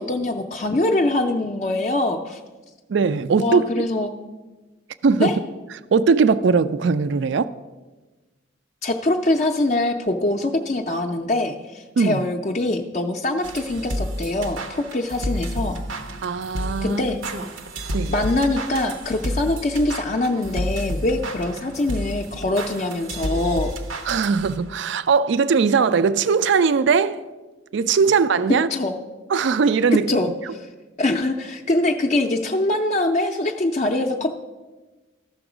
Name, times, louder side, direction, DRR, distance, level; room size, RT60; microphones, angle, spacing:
voice 1, 0.0-2.4 3.4-4.1 5.2-5.3 8.8-15.8 16.8-17.2 18.1-23.7 28.7-29.0 30.1-30.7 31.0-34.3, left 2 dB, 35° left, 0.5 m, -23 dB
voice 2, 2.9-3.9 5.0-5.3 5.9-7.5 12.0-12.2 16.2-17.0 17.9-18.1 24.1-27.2 27.7-28.7 29.3-30.1, right 5 dB, 60° right, 0.4 m, -19 dB
sound 1, 13.4-24.8, equal, 80° right, 0.9 m, -31 dB
14.0 x 6.1 x 4.9 m
head